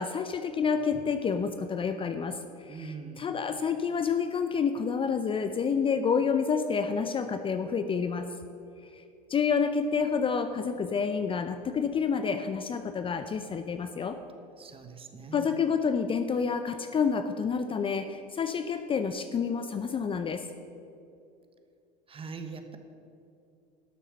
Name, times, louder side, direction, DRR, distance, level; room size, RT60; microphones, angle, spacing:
voice 1, 0.0-8.3 8.9-9.0 9.3-14.2 15.3-20.5, left 6 dB, 25° left, 9 dB, 0.6 m, -29 dB
voice 2, 2.7-3.4 14.6-15.6 22.1-22.8, right 5 dB, 25° right, 7 dB, 1.2 m, -42 dB
12.5 x 6.7 x 6.3 m, 2.6 s
hypercardioid pair, 90°, 21 cm